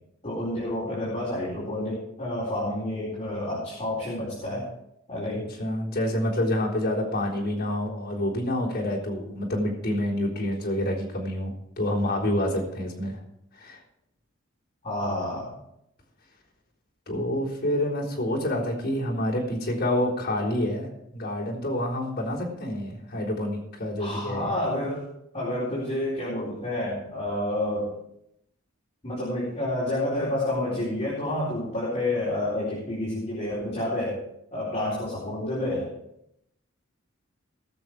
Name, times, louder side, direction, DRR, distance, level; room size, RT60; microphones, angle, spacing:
voice 1, 0.2-4.7 5.1-5.5 14.8-15.5 24.0-25.1 25.3-27.9 29.0-34.2 34.5-35.9, left 1 dB, 30° left, -8 dB, 4.2 m, -29 dB
voice 2, 5.3-13.2 13.6-13.8 17.1-24.5, left 1 dB, 50° left, -4 dB, 3.9 m, -28 dB
19.5 x 7.0 x 4.8 m, 0.79 s
head